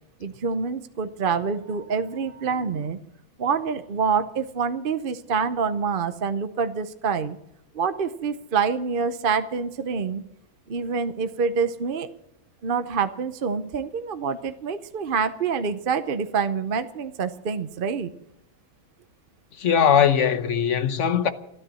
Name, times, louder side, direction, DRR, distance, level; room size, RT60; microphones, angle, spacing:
voice 1, 0.2-3.0 3.4-7.4 7.7-10.2 10.7-12.1 12.6-18.1, right 5 dB, 45° right, 0.8 m, -26 dB
voice 2, 19.6-21.3, left 8 dB, 60° left, 1.3 m, -20 dB
13.5 x 13.0 x 7.6 m
omnidirectional pair, 1.5 m